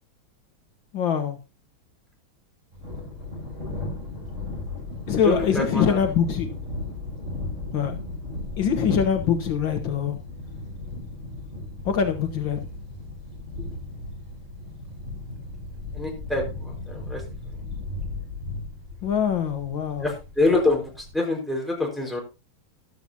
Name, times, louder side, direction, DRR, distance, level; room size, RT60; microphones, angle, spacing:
voice 1, 0.9-1.4 5.1-6.5 7.7-7.9 8.6-10.2 11.9-12.6 19.0-20.1, left 7 dB, 70° left, 7 dB, 1.7 m, -23 dB
Thunder, 2.7-21.1, left 2 dB, 35° right, 4.9 m, -36 dB
voice 2, 5.2-6.0 13.6-13.7 15.9-17.2 20.0-22.2, left 2 dB, ahead, -1 dB, 4.8 m, -26 dB
14.5 x 12.0 x 2.8 m, 0.28 s
omnidirectional pair, 2.3 m